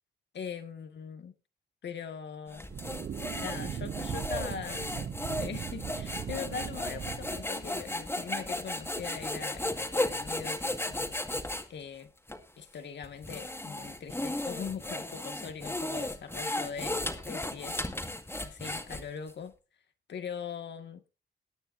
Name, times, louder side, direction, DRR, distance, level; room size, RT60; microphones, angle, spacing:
voice 1, 0.3-1.3 1.8-2.7 3.3-5.1 5.4-11.3 11.7-12.1 12.6-17.8 18.3-19.5 20.1-21.1, left 7 dB, 80° left, 1.8 m, -41 dB
sound 1, 2.5-11.7 12.3-12.4 13.0-19.3, left 1 dB, 15° left, 2.1 m, -35 dB
sound 2, 2.7-7.7, right 8 dB, 55° right, 0.5 m, -38 dB
21.5 x 9.1 x 2.7 m
cardioid pair, 65°, 18 cm